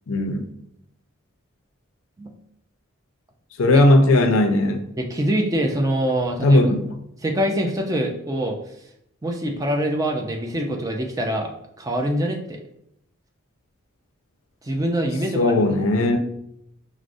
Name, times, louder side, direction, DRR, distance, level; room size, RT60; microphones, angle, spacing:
voice 1, 0.1-0.5 3.6-4.9 6.4-6.8 15.3-16.2, left 1 dB, 80° left, 6 dB, 0.4 m, -17 dB
voice 2, 5.0-6.6 7.2-8.6 9.2-11.5 11.8-12.6 14.6-15.5, right 1 dB, 15° right, 2 dB, 0.3 m, -24 dB
4.6 x 2.0 x 2.5 m, 0.76 s
head